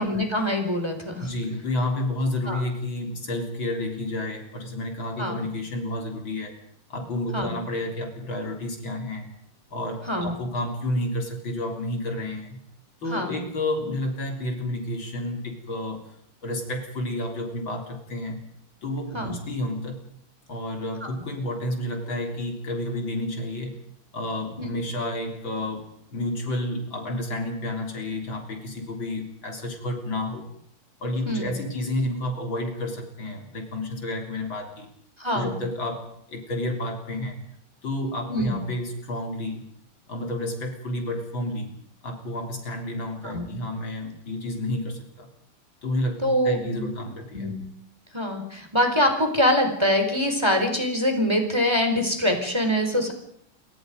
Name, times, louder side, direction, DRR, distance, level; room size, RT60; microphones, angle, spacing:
voice 1, 0.0-1.3 2.5-2.6 5.2-5.4 7.3-7.6 10.1-10.4 13.1-13.4 19.1-19.4 21.0-21.1 24.6-24.7 31.3-31.5 35.2-35.6 38.3-38.6 43.2-43.5 46.2-46.8 47.3-47.7 48.1-53.1, left 1 dB, 10° right, 4 dB, 4.4 m, -24 dB
voice 2, 1.2-6.6 6.9-9.3 9.7-12.6 13.0-16.1 16.4-18.4 18.8-20.0 20.5-23.7 24.1-30.5 31.0-34.9 35.3-37.4 37.8-39.7 40.1-41.7 42.0-45.3 45.8-47.5, left 1 dB, 65° left, 3 dB, 4.3 m, -30 dB
28.0 x 25.0 x 5.3 m, 0.67 s
omnidirectional pair, 2.3 m